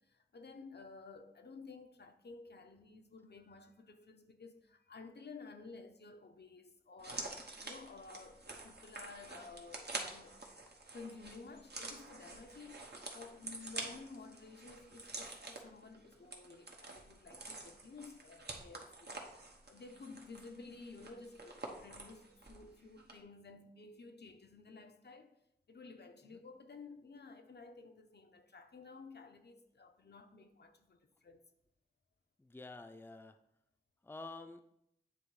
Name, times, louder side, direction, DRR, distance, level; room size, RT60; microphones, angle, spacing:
voice 1, 0.0-10.4 10.9-19.3 19.7-25.3 25.7-31.4, left 4 dB, 80° left, 0.6 m, -53 dB
sound 1, 7.0-22.7 23.0-23.1, right 2 dB, 80° right, 1.0 m, -48 dB
voice 2, 32.4-33.4 34.0-34.7, left 3 dB, 15° left, 0.4 m, -49 dB
8.6 x 3.0 x 4.7 m
wide cardioid pair, 55°, 17 cm